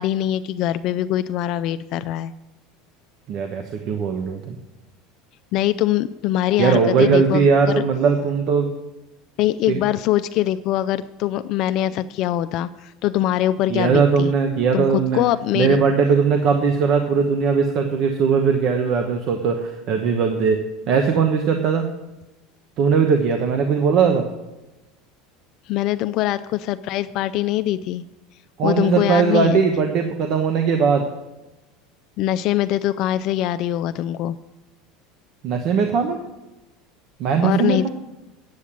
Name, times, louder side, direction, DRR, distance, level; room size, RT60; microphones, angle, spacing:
voice 1, 0.0-2.3 5.5-7.8 9.4-14.3 14.7-14.9 15.1-15.8 25.7-28.0 28.6-29.6 32.2-34.4 37.4-37.9, left 13 dB, 55° left, 12 dB, 0.4 m, -23 dB
voice 2, 3.3-4.6 6.6-8.7 9.7-9.8 13.7-15.2 15.5-20.6 20.9-21.8 22.8-24.3 28.6-31.0 35.4-36.2 37.2-37.9, right 5 dB, 50° right, 5 dB, 1.0 m, -19 dB
8.6 x 8.3 x 7.4 m, 1.0 s
supercardioid pair, 125°, 0 cm